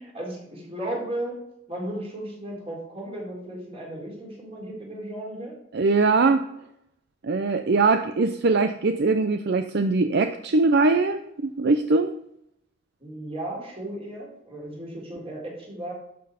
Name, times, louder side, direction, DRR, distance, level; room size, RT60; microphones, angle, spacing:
voice 1, 0.0-1.4 1.7-5.5 13.0-15.9, right 1 dB, 30° right, -2 dB, 4.0 m, -35 dB
voice 2, 5.7-6.5 7.2-12.1, right 3 dB, 55° right, 9 dB, 0.5 m, -21 dB
12.0 x 6.9 x 5.0 m, 0.78 s
head